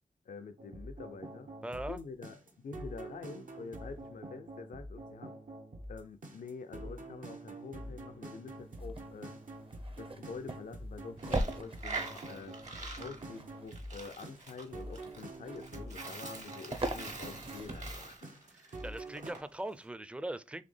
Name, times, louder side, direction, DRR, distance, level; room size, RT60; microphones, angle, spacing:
voice 1, 0.3-1.5 1.9-2.4 2.6-5.3 5.9-9.3 10.0-12.6 12.9-18.7, left 4 dB, 80° left, 0.4 m, -47 dB
sound 1, 0.6-19.3, right 1 dB, 80° right, 1.0 m, -46 dB
voice 2, 1.6-2.0 18.5-20.6, right 1 dB, 10° right, 0.4 m, -40 dB
sound 2, 8.6-18.2, right 2 dB, 45° right, 0.7 m, -42 dB
Coin (dropping), 11.2-19.4, right 3 dB, 60° right, 1.4 m, -45 dB
4.1 x 3.3 x 3.2 m
wide cardioid pair, 65°, 14 cm